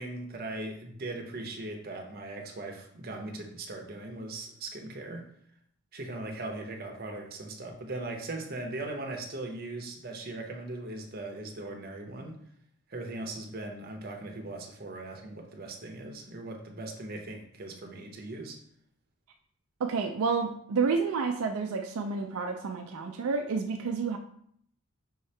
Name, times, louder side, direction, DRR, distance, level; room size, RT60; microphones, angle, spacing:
voice 1, 0.0-5.2 5.9-12.4 12.9-18.6, right 2 dB, 45° right, 2 dB, 0.7 m, -39 dB
voice 2, 19.8-24.2, right 5 dB, 80° right, 4 dB, 0.4 m, -30 dB
5.6 x 2.8 x 3.2 m, 0.65 s
head